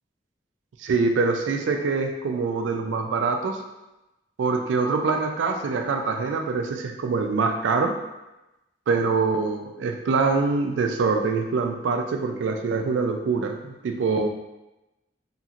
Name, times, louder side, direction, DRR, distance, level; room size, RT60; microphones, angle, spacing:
voice 1, 0.8-3.6 4.4-8.0 8.9-14.3, right 4 dB, 85° right, 4 dB, 0.3 m, -24 dB
2.9 x 2.8 x 2.4 m, 0.99 s
head